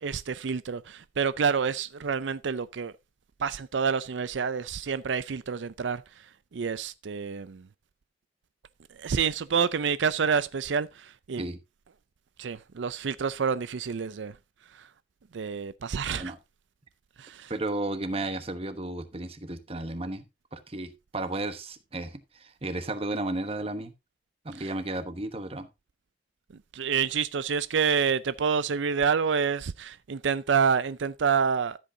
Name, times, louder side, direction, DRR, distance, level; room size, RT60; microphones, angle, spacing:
voice 1, 0.0-2.9 3.4-7.7 9.0-11.4 12.4-14.4 14.7-14.9 15.3-16.3 17.2-17.5 24.6-24.7 26.7-31.8, right 6 dB, 85° right, 0.5 m, -28 dB
voice 2, 17.5-20.2 20.5-23.9 24.4-25.7, right 2 dB, 35° right, 1.2 m, -33 dB
13.5 x 8.0 x 2.7 m
head